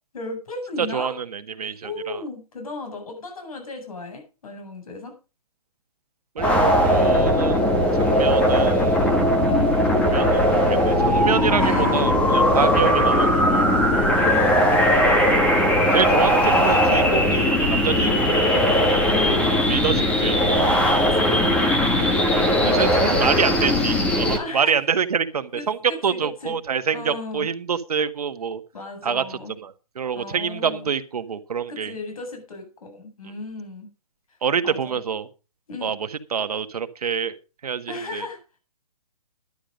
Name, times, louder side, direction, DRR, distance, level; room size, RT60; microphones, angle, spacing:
voice 1, 0.1-1.1 1.8-5.1 8.2-8.3 9.4-9.9 11.6-12.1 12.5-12.8 14.1-14.9 19.1-19.5 21.0-21.8 22.5-23.4 24.3-24.7 25.5-26.6 26.9-27.5 28.7-29.5 30.1-30.9 31.7-33.9 34.6-35.0 35.7-36.0 37.9-38.4, left 3 dB, 65° left, 5 dB, 8.0 m, -35 dB
voice 2, 0.8-2.2 6.3-7.6 7.9-9.1 10.0-14.2 15.9-18.8 19.7-20.8 22.3-28.6 29.0-31.9 34.4-35.3 35.8-37.4 37.6-38.3, right 7 dB, 75° right, 10 dB, 1.6 m, -26 dB
sound 1, 6.4-24.4, equal, 5° left, 1.2 m, -19 dB
12.0 x 11.5 x 5.2 m, 0.33 s
hypercardioid pair, 165°, 20 cm